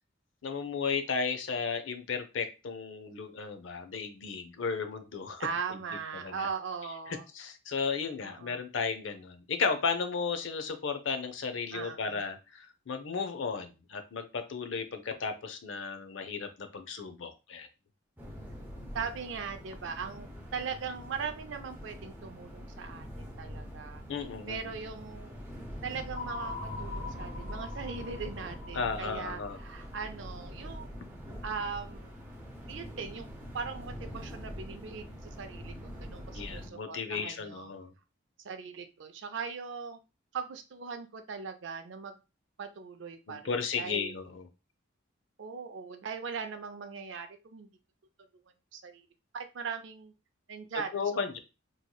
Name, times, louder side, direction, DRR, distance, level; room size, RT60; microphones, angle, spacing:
voice 1, 0.4-5.5 6.1-6.5 7.3-17.7 24.1-24.7 28.7-29.6 36.3-37.9 43.3-44.5 50.9-51.4, left 5 dB, 70° left, 9 dB, 0.5 m, -34 dB
voice 2, 5.4-7.3 8.2-8.6 11.7-12.2 18.9-24.0 24.5-25.4 25.8-30.9 31.4-32.2 32.7-37.7 38.4-40.0 40.3-42.2 42.6-44.1 45.4-47.7 48.7-49.1 49.3-50.1 50.5-51.3, right 5 dB, 65° right, 8 dB, 0.4 m, -40 dB
sound 1, 18.2-36.7, equal, 10° right, 0.6 m, -44 dB
sound 2, 26.1-30.4, left 4 dB, 40° left, 1.4 m, -44 dB
3.1 x 2.7 x 2.2 m, 0.29 s
head